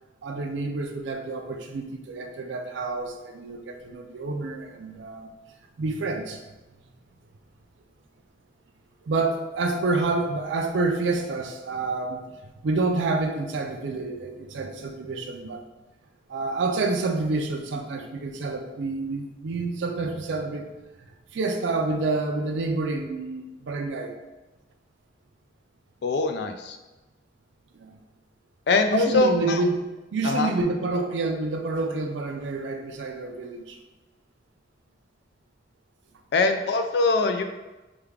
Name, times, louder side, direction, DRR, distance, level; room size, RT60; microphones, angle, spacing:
voice 1, 0.2-5.3 5.8-6.4 9.0-12.2 12.6-15.7 16.3-20.7 21.3-24.2 27.8-28.0 28.9-29.8 30.1-33.8, right 3 dB, 80° right, 5 dB, 0.4 m, -28 dB
voice 2, 26.0-26.8 28.7-29.6 30.2-30.5 36.3-37.4, left 3 dB, 65° left, 7 dB, 0.3 m, -22 dB
3.4 x 2.3 x 3.4 m, 1.1 s
head